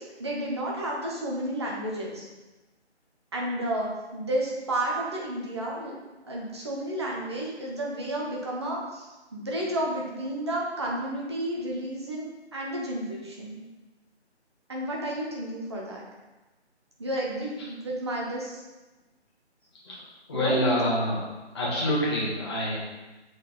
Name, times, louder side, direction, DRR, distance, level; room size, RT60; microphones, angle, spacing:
voice 1, 0.0-2.2 3.3-5.9 6.2-13.6 14.7-16.0 17.0-18.6 20.3-20.6, right 1 dB, 25° right, -3 dB, 0.8 m, -31 dB
voice 2, 20.3-21.2 21.5-22.8, equal, 25° left, -7 dB, 1.5 m, -26 dB
6.1 x 4.2 x 3.9 m, 1.1 s
figure-of-eight pair, 160°, 34 cm